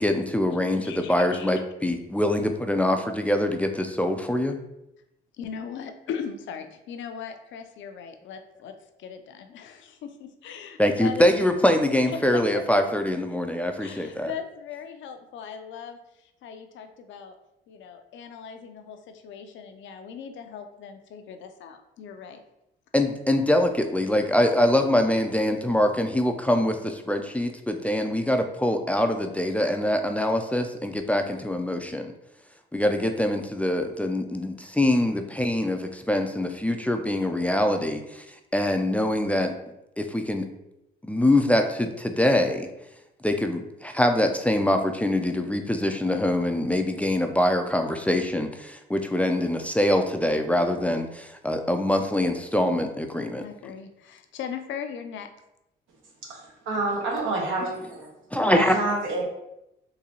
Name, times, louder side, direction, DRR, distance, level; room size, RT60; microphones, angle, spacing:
voice 1, 0.0-4.5 10.8-14.3 22.9-32.1 32.7-38.2 38.5-39.5 40.0-40.5 41.0-42.7 43.2-53.4 58.3-58.7, left 1 dB, 5° left, 5 dB, 0.3 m, -24 dB
voice 2, 0.8-1.6 5.3-11.5 11.9-13.1 13.8-17.4 17.7-22.4 53.4-55.3, left 7 dB, 70° left, 7 dB, 0.5 m, -39 dB
voice 3, 56.2-58.1 58.5-59.2, right 2 dB, 85° right, -1 dB, 1.0 m, -28 dB
3.9 x 2.7 x 2.8 m, 0.86 s
cardioid pair, 90°, 20 cm